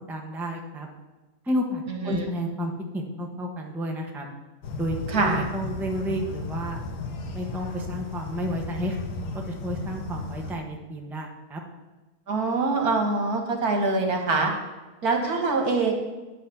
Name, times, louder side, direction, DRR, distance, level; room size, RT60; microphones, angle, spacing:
voice 1, 0.1-0.9 1.5-4.2 4.8-6.8 7.3-9.0 9.6-11.6, equal, ahead, 1 dB, 1.0 m, -31 dB
voice 2, 1.9-2.3 5.1-5.5 12.3-14.5 15.0-15.9, right 3 dB, 65° right, 2 dB, 2.1 m, -24 dB
sound 1, 4.6-10.5, left 2 dB, 85° left, 1.6 m, -35 dB
9.5 x 6.1 x 7.1 m, 1.1 s
omnidirectional pair, 1.7 m